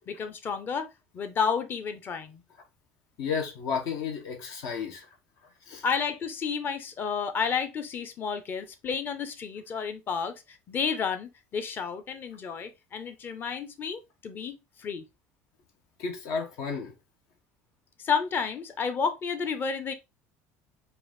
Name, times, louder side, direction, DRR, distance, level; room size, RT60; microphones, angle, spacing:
voice 1, 0.1-2.4 5.8-15.0 18.0-19.9, left 6 dB, 35° left, 0.9 m, -31 dB
voice 2, 3.2-5.1 5.7-5.8 16.0-16.9, left 6 dB, 65° left, 1.2 m, -32 dB
4.7 x 2.6 x 3.7 m
supercardioid pair, 120°, 6 cm